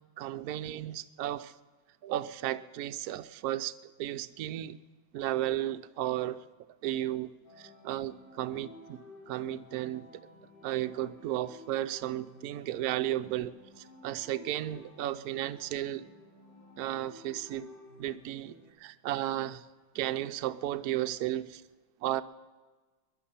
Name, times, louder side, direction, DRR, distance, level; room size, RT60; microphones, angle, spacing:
voice 1, 0.2-1.5 2.0-3.7 4.0-4.8 5.1-6.4 6.8-7.3 7.6-9.0 9.3-10.2 10.6-16.0 16.8-17.7 18.0-19.7 19.9-21.6 22.0-22.2, right 13 dB, 65° right, 10 dB, 1.0 m, -34 dB
sound 1, 7.4-18.7, left 2 dB, 70° left, 3.7 m, -54 dB
22.0 x 11.5 x 5.7 m, 1.3 s
omnidirectional pair, 2.1 m